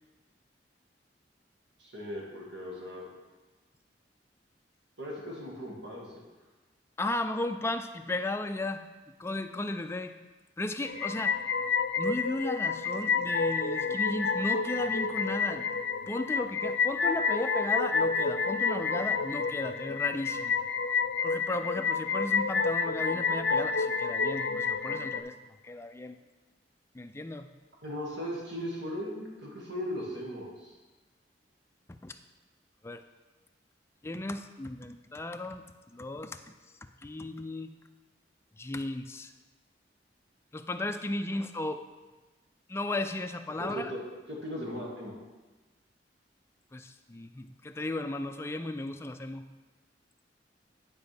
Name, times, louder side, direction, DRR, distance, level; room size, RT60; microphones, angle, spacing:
voice 1, 1.8-3.1 5.0-6.2 27.8-30.8 43.6-44.0 44.3-45.1, equal, 85° right, -3 dB, 2.1 m, -38 dB
voice 2, 7.0-8.8 9.2-10.2 10.6-11.4 12.0-15.7 16.1-20.6 21.2-26.2 26.9-27.5 32.0-32.2 32.8-33.0 34.0-35.6 35.9-36.5 37.0-37.7 38.6-39.3 40.5-41.8 42.7-43.9 46.7-49.5, left 2 dB, 15° left, 7 dB, 0.3 m, -35 dB
sound 1, 10.9-25.2, left 5 dB, 80° left, 0.5 m, -29 dB
10.5 x 5.0 x 3.4 m, 1.2 s
head